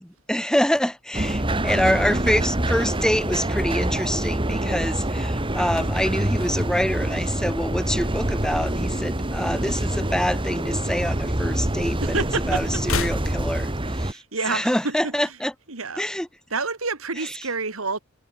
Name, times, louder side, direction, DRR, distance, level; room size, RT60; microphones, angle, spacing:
voice 1, 0.3-14.2 14.5-15.5 16.0-16.3 17.2-17.3, equal, 5° left, 2.4 m, -26 dB
sound 1, 1.1-14.1, right 1 dB, 25° right, 2.3 m, -25 dB
sound 2, 5.7-8.0 8.3-8.6 8.9-10.3 10.6-12.0 12.2-14.3 14.6-14.7, left 4 dB, 80° left, 2.8 m, -36 dB
voice 2, 12.0-12.6 14.0-15.3 15.7-16.1 16.5-18.0, right 4 dB, 75° right, 3.0 m, -28 dB
head